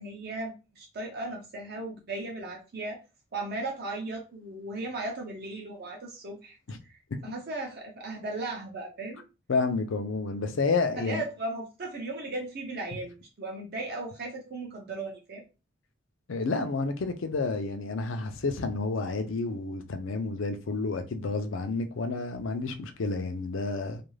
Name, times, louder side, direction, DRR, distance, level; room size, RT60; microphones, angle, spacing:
voice 1, 0.0-3.0 3.3-6.6 6.8-9.2 11.0-15.4, right 2 dB, 50° right, 0.5 m, -36 dB
voice 2, 9.5-11.2 16.3-24.0, left 3 dB, 65° left, 0.5 m, -30 dB
2.4 x 2.3 x 3.1 m
head